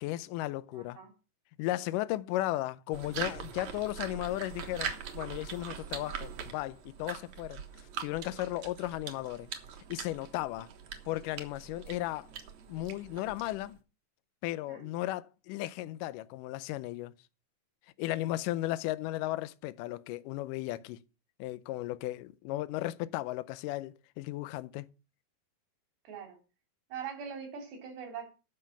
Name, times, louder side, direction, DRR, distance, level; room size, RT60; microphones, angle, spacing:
voice 1, 0.0-1.0 1.6-7.6 8.0-9.5 9.9-10.7 11.1-12.3 12.7-13.8 14.4-17.1 18.0-21.0 21.4-24.9, left 16 dB, 80° left, 2.0 m, -35 dB
voice 2, 0.7-1.1 14.7-14.9 26.1-26.4 26.9-28.3, right 7 dB, 80° right, 5.2 m, -42 dB
sound 1, 2.9-13.8, right 7 dB, 60° right, 2.3 m, -42 dB
12.5 x 5.5 x 7.0 m
omnidirectional pair, 4.3 m